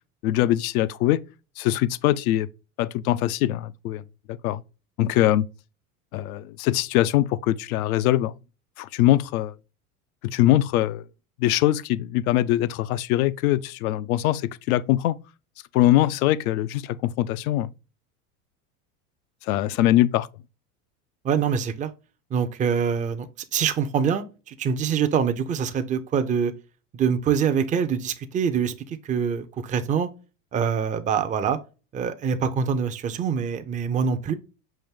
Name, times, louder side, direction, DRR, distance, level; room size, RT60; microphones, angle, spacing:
voice 1, 0.2-1.2 1.6-2.5 2.8-4.6 5.0-5.5 6.1-8.3 8.8-9.5 10.2-11.1 11.4-15.2 15.7-17.7 19.4-20.3, left 14 dB, 70° left, 0.5 m, -22 dB
voice 2, 21.2-21.9 22.3-26.5 26.9-30.1 30.5-31.6 31.9-34.3, right 7 dB, 20° right, 0.5 m, -25 dB
5.7 x 2.6 x 3.4 m
hypercardioid pair, 100°, 44 cm